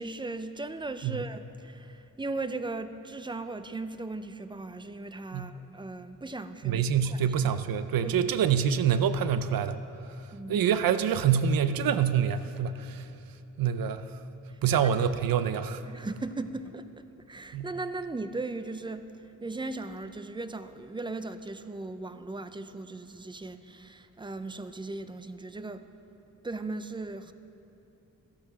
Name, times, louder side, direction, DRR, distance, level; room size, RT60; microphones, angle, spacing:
voice 1, 0.0-7.5 8.0-8.3 10.3-10.7 14.5-14.9 15.9-25.8 26.4-27.3, right 3 dB, 15° right, 11 dB, 0.4 m, -38 dB
voice 2, 6.6-9.8 10.5-13.1 13.6-14.0 14.6-15.8 17.5-17.7, right 8 dB, 85° right, 12 dB, 0.6 m, -26 dB
13.0 x 8.5 x 6.1 m, 2.8 s
wide cardioid pair, 110°, 34 cm